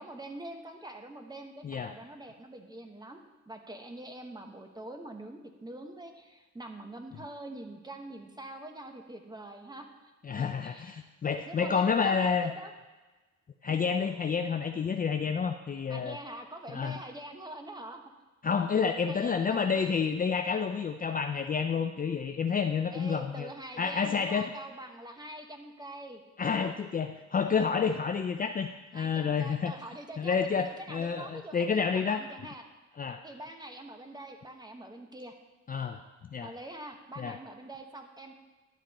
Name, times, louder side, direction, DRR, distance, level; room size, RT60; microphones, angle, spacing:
voice 1, 0.0-3.2 3.5-10.1 10.4-11.0 11.5-12.7 13.7-13.8 15.9-18.0 19.1-19.9 22.9-26.2 28.9-32.6 33.2-35.3 36.4-38.3, right 1 dB, 15° right, 5 dB, 1.2 m, -44 dB
voice 2, 1.6-1.9 10.2-12.5 13.6-16.2 16.7-17.0 18.4-23.5 23.8-24.5 26.4-28.7 28.9-29.7 30.2-32.2 33.0-33.2 35.7-36.0 36.3-36.5 37.2-37.4, left 6 dB, 30° left, 6 dB, 0.5 m, -29 dB
10.5 x 7.5 x 4.2 m, 1.2 s
cardioid pair, 90°, 30 cm